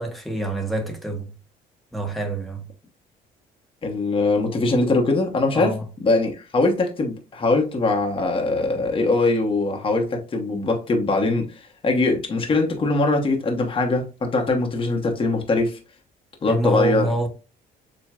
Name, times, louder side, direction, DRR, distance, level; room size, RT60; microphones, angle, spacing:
voice 1, 0.0-1.3 1.9-2.7 5.5-5.8 16.5-17.3, right 2 dB, ahead, 1.1 m, -26 dB
voice 2, 3.8-15.8 16.4-17.1, left 3 dB, 30° left, 1.1 m, -22 dB
7.3 x 2.4 x 2.4 m
cardioid pair, 110°, 17 cm